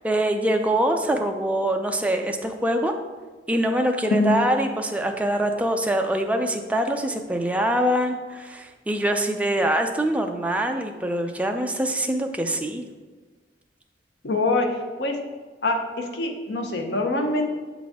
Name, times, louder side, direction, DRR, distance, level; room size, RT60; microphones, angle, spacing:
voice 1, 0.0-2.9 3.5-12.8, right 1 dB, 10° right, 4 dB, 0.4 m, -24 dB
voice 2, 14.2-15.2 15.6-17.4, left 2 dB, 80° left, 3 dB, 0.8 m, -24 dB
7.5 x 4.0 x 3.5 m, 1.4 s
head